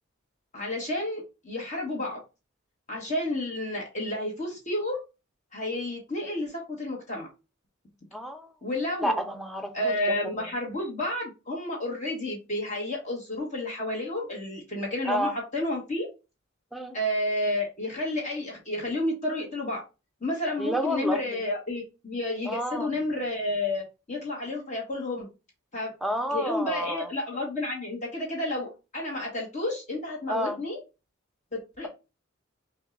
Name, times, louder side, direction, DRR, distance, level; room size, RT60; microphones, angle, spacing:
voice 1, 0.5-2.2 2.9-5.0 5.5-7.3 8.6-9.1 9.7-16.1 16.9-19.8 20.2-25.3 25.7-25.9 26.3-30.8 31.8-31.9, left 1 dB, 35° left, 1.3 m, -31 dB
voice 2, 8.1-8.5 9.0-9.9 15.1-15.3 16.7-16.9 20.6-21.2 22.5-22.9 26.0-27.1 30.3-30.6, equal, ahead, 0.6 m, -30 dB
6.1 x 2.3 x 2.5 m
head